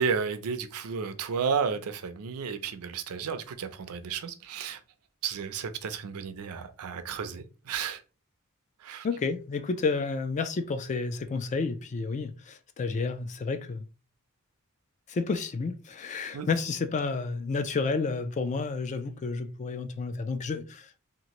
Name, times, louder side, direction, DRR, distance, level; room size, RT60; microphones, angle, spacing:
voice 1, 0.0-4.8 5.2-8.0 8.8-9.1 16.3-16.5, right 6 dB, 75° right, 0.4 m, -32 dB
voice 2, 9.0-13.8 15.1-21.0, left 4 dB, 35° left, 0.3 m, -31 dB
2.9 x 2.4 x 2.9 m
head